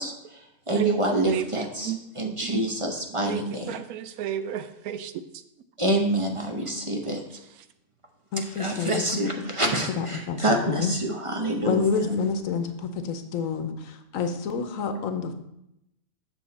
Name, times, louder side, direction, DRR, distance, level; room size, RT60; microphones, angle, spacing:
voice 1, 0.0-3.8 5.8-7.2 8.6-11.9, right 1 dB, 30° right, 3 dB, 0.7 m, -27 dB
voice 2, 0.7-2.7 3.2-5.1, right 10 dB, 85° right, 11 dB, 1.1 m, -31 dB
voice 3, 8.3-10.9 11.6-15.3, left 5 dB, 70° left, 8 dB, 1.1 m, -28 dB
7.2 x 7.0 x 4.1 m, 0.83 s
omnidirectional pair, 1.5 m